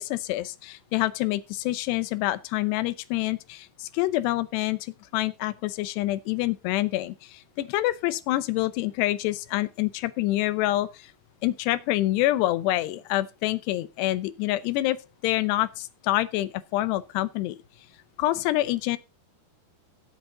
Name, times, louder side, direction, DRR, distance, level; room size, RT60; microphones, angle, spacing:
voice 1, 0.0-11.1 11.4-15.0 15.2-17.6 18.2-19.0, left 16 dB, 90° left, 2.9 m, -27 dB
14.5 x 8.0 x 3.8 m
omnidirectional pair, 4.7 m